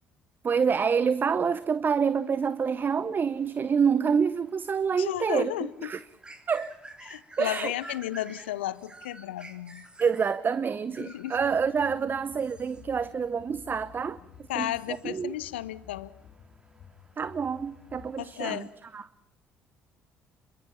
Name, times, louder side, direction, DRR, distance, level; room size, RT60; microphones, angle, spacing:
voice 1, 0.4-6.0 6.5-6.7 7.4-7.7 10.0-14.2 14.5-15.3 17.2-18.7 18.9-19.1, right 6 dB, 35° right, 0.7 m, -27 dB
sound 1, 2.0-19.0, right 1 dB, 15° right, 3.3 m, -53 dB
voice 2, 5.0-5.9 7.1-9.8 11.0-11.4 14.5-16.1 18.2-18.7, left 14 dB, 80° left, 0.8 m, -33 dB
sound 2, 11.3-18.1, left 8 dB, 55° left, 3.0 m, -53 dB
27.0 x 23.0 x 5.6 m
figure-of-eight pair, 55°, 6 cm